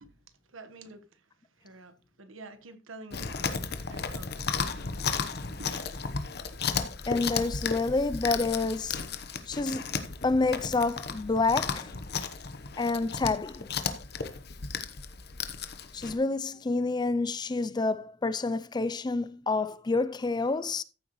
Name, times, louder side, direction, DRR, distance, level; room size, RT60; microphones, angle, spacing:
voice 1, 0.4-1.3 1.6-4.7 5.6-5.7, right 2 dB, 85° right, 1.3 m, -49 dB
Chewing mastication, 3.1-16.2, left 5 dB, 55° left, 1.0 m, -34 dB
voice 2, 7.1-9.0 9.5-9.8 10.2-11.9 12.8-13.7 15.9-20.8, left 3 dB, 20° left, 0.4 m, -28 dB
14.0 x 7.8 x 3.1 m
head